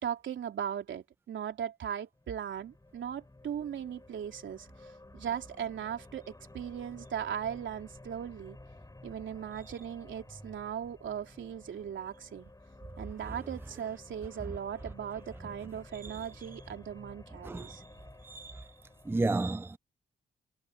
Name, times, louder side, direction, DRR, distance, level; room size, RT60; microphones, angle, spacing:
voice 1, 0.0-8.6 9.0-12.5 13.0-17.8, right 9 dB, 75° right, 3.7 m, -38 dB
sound 1, 2.1-19.1, left 2 dB, 20° left, 7.8 m, -53 dB
voice 2, 17.4-17.8 18.2-18.6 19.1-19.8, right 2 dB, 10° right, 0.5 m, -32 dB
cardioid pair, 65°, 19 cm